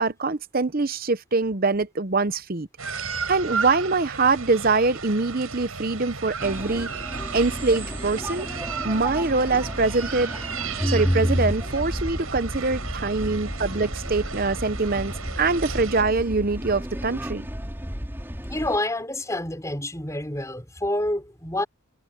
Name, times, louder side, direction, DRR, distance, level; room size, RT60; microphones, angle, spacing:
voice 1, 0.0-2.7 3.3-6.9 7.3-8.5 8.8-17.5, right 3 dB, 45° right, 0.9 m, -24 dB
sound 1, 2.8-16.0, right 5 dB, 90° right, 6.7 m, -34 dB
sound 2, 6.4-18.8, equal, 10° right, 4.1 m, -34 dB
voice 2, 10.8-11.5 18.5-21.7, left 1 dB, 15° left, 5.6 m, -26 dB
head